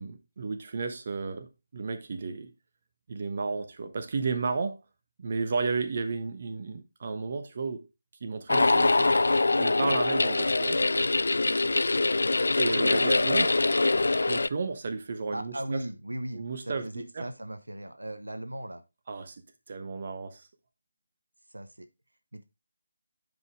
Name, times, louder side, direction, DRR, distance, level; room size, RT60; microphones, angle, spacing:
voice 1, 0.0-2.5 3.1-4.8 5.2-7.9 8.2-9.1 9.6-10.8 12.6-13.6 14.3-15.8 16.3-17.2 19.1-19.3 19.7-20.4, right 4 dB, 40° right, 1.1 m, -33 dB
sound 1, 8.5-14.5, left 2 dB, 65° left, 0.3 m, -24 dB
voice 2, 15.3-18.8 21.5-21.9 22.3-22.4, right 1 dB, 80° right, 0.9 m, -38 dB
9.4 x 5.3 x 3.5 m
figure-of-eight pair, 155°, 0 cm